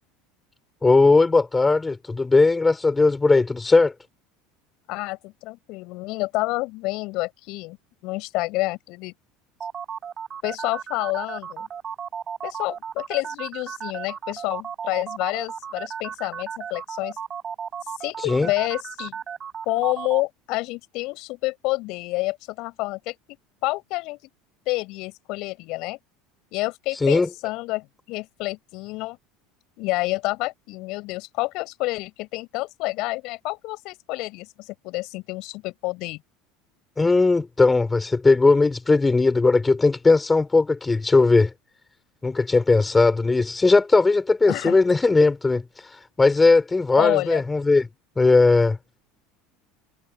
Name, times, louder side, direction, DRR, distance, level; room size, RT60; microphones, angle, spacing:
voice 1, 0.8-3.9 18.2-18.5 27.0-27.3 37.0-41.5 42.2-45.6 46.2-47.9 48.2-48.8, left 3 dB, 15° left, 4.6 m, -18 dB
voice 2, 4.9-7.8 8.0-9.1 10.4-11.7 12.4-17.2 18.0-19.2 19.7-23.1 23.6-24.2 24.7-26.0 26.5-29.2 29.8-36.2 44.5-44.8 47.0-47.4, left 22 dB, 65° left, 7.5 m, -28 dB
sound 1, 9.6-20.2, right 7 dB, 35° right, 5.9 m, -34 dB
hypercardioid pair, 90°, 0 cm